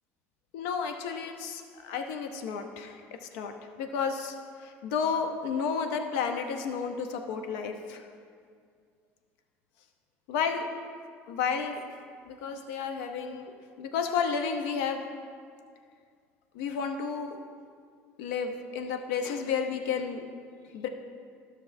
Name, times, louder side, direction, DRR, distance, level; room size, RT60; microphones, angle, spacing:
voice 1, 0.5-3.0 3.3-8.0 10.3-10.7 11.3-11.8 12.2-15.0 16.5-17.4 18.2-20.2 20.7-20.9, left 6 dB, 75° left, 6 dB, 0.7 m, -32 dB
12.5 x 6.2 x 2.6 m, 2.1 s
hypercardioid pair, 70°, 7 cm